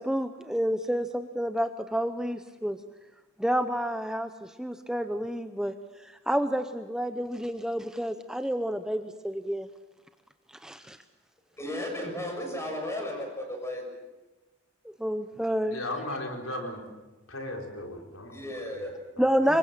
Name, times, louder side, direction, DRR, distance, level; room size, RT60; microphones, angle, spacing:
voice 1, 0.0-2.8 3.4-5.7 6.0-9.7 10.6-11.0 14.8-15.8 19.2-19.6, equal, 5° right, 8 dB, 0.8 m, -29 dB
voice 2, 11.6-13.8 18.3-18.9 19.5-19.6, left 1 dB, 15° left, 3 dB, 6.6 m, -34 dB
voice 3, 15.7-16.8 17.3-19.2, left 1 dB, 80° left, 3 dB, 4.5 m, -37 dB
26.0 x 23.0 x 7.6 m, 1.1 s
head